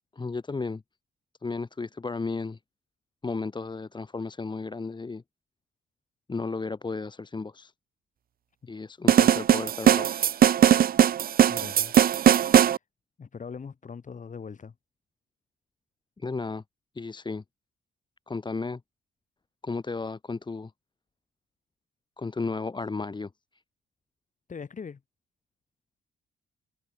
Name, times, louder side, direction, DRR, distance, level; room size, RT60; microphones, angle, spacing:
voice 1, 0.1-0.8 1.4-2.6 3.2-5.2 6.3-7.7 8.7-10.2 16.2-16.6 16.9-17.4 18.3-18.8 19.6-20.7 22.2-23.3, left 4 dB, 25° left, 1.3 m, -34 dB
sound 1, 9.1-12.8, right 10 dB, 50° right, 0.6 m, -19 dB
voice 2, 11.5-12.0 13.2-14.7 24.5-25.0, left 6 dB, 40° left, 4.6 m, -40 dB
cardioid pair, 90°, 20 cm